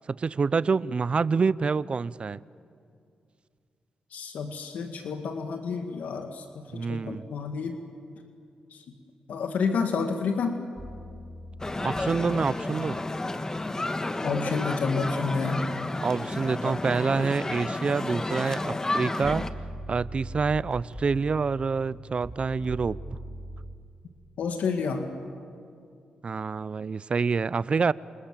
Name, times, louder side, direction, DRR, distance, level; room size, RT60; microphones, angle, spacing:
voice 1, 0.1-2.4 6.7-7.3 11.8-13.0 16.0-19.4 19.9-23.0 26.2-27.9, right 5 dB, 45° right, 19 dB, 0.6 m, -27 dB
voice 2, 4.1-6.4 6.7-7.8 8.7-8.8 9.3-10.6 14.2-15.8 24.4-25.1, left 5 dB, 80° left, 5 dB, 2.0 m, -29 dB
sound 1, 10.8-12.4 19.2-23.7, equal, ahead, 3.8 m, -40 dB
sound 2, 11.6-19.5, left 2 dB, 25° left, 1.4 m, -31 dB
28.5 x 26.5 x 7.6 m, 2.4 s
cardioid pair, 70°, 3 cm